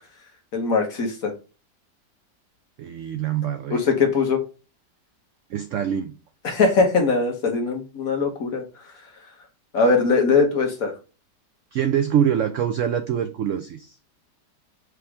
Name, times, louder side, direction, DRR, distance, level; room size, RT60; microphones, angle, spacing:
voice 1, 0.5-1.3 3.7-4.4 6.4-8.6 9.7-10.9, left 4 dB, 55° left, 4 dB, 1.4 m, -21 dB
voice 2, 2.8-3.8 5.5-6.2 11.7-14.0, right 9 dB, 80° right, 8 dB, 0.6 m, -24 dB
4.9 x 3.0 x 3.4 m, 0.32 s
omnidirectional pair, 1.9 m